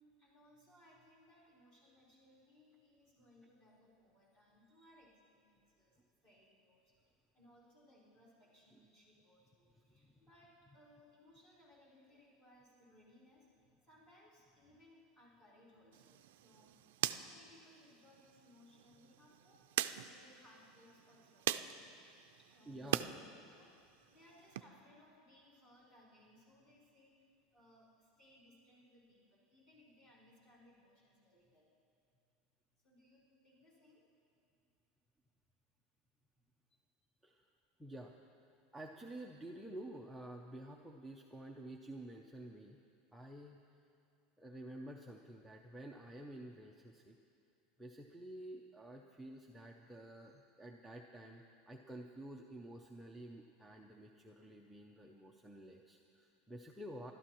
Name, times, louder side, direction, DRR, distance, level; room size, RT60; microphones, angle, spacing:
voice 1, 0.0-6.0 6.2-21.7 22.4-31.7 32.7-34.0 36.7-36.8, left 1 dB, 30° left, -7 dB, 3.9 m, -66 dB
voice 2, 9.9-10.3 22.7-23.2 37.2-37.5 37.8-38.1 38.7-42.8 43.1-43.6 44.4-47.2 47.8-57.1, right 1 dB, ahead, -1 dB, 0.5 m, -51 dB
sound 1, 15.9-23.1 23.5-24.6, right 13 dB, 90° right, 0.4 m, -43 dB
27.0 x 12.5 x 3.0 m, 2.5 s
supercardioid pair, 175°, 0 cm